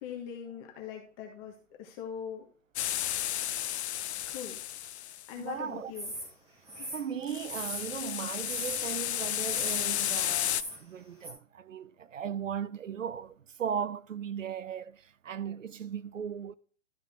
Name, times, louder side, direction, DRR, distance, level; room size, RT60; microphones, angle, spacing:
voice 1, 0.0-2.4 4.3-4.6 5.3-6.1 6.8-6.9, left 8 dB, 25° left, 1.4 m, -41 dB
sound 1, 2.8-5.3 7.3-10.6, left 12 dB, 60° left, 0.5 m, -33 dB
voice 2, 5.4-5.9 6.9-16.5, right 8 dB, 90° right, 0.8 m, -37 dB
sound 2, 5.9-6.3 6.7-8.0 8.4-8.9 9.5-9.9 10.4-10.8 11.2-11.3, equal, 15° right, 3.0 m, -39 dB
12.5 x 5.5 x 3.7 m
hypercardioid pair, 140°, 37 cm